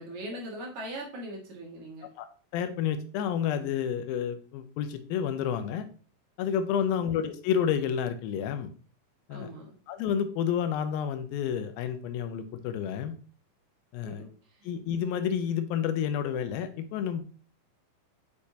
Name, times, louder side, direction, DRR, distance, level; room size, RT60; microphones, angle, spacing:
voice 1, 0.0-2.1 6.8-7.1 9.3-9.8 14.0-14.7, right 1 dB, 60° right, -2 dB, 2.7 m, -41 dB
voice 2, 2.5-5.9 6.4-8.7 9.3-9.5 9.9-13.2 13.9-14.2 14.6-17.2, left 8 dB, 90° left, 9 dB, 2.5 m, -30 dB
6.6 x 5.9 x 2.7 m, 0.39 s
omnidirectional pair, 4.1 m